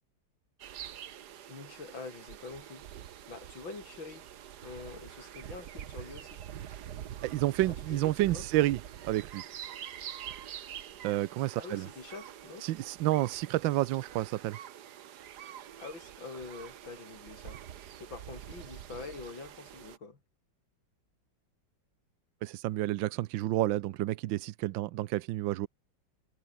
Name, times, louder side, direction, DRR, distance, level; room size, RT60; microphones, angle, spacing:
sound 1, 0.6-20.0, right 10 dB, 60° right, 1.5 m, -46 dB
voice 1, 1.5-2.8 3.3-4.3 4.6-6.4 7.7-8.5 11.5-12.6 15.8-20.2, left 4 dB, 80° left, 4.7 m, -45 dB
voice 2, 7.2-9.4 11.0-11.9 12.6-14.6 22.4-25.7, right 16 dB, 85° right, 1.4 m, -30 dB
omnidirectional pair, 2.1 m